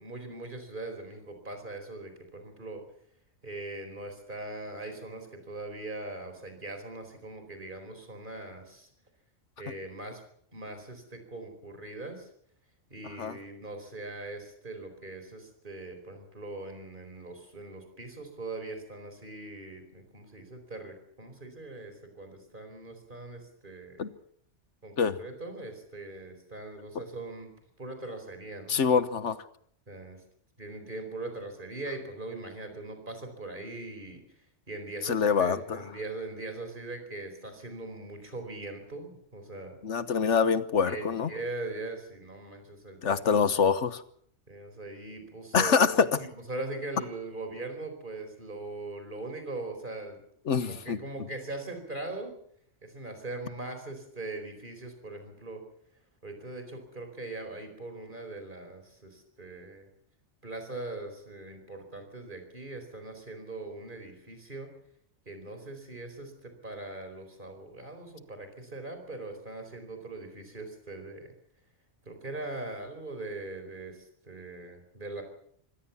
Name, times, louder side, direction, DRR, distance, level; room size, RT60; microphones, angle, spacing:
voice 1, 0.0-2.8 3.4-8.9 9.6-10.2 10.5-12.3 12.9-24.1 24.8-27.5 27.8-28.8 29.9-30.2 30.6-34.2 34.7-39.8 40.8-43.3 44.5-50.2 50.5-52.3 52.8-55.6 56.2-59.9 60.4-64.8 65.3-71.3 72.1-75.2, right 2 dB, 45° right, 6 dB, 4.7 m, -41 dB
voice 2, 28.7-29.4 35.0-35.8 39.8-41.3 43.0-44.0 45.5-46.1 50.5-51.0, left 6 dB, 80° left, 14 dB, 1.4 m, -25 dB
24.5 x 17.5 x 7.2 m, 0.64 s
omnidirectional pair, 1.2 m